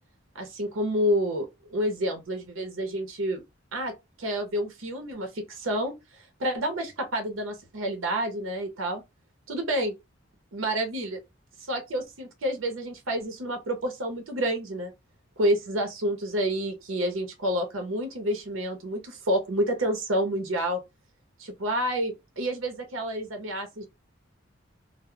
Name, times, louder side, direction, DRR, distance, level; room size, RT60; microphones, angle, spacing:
voice 1, 0.3-3.4 3.7-5.9 6.4-9.0 9.5-9.9 10.5-11.2 11.7-14.9 15.4-20.8 21.4-23.9, equal, 85° right, 0.7 m, -29 dB
2.2 x 2.1 x 3.6 m
head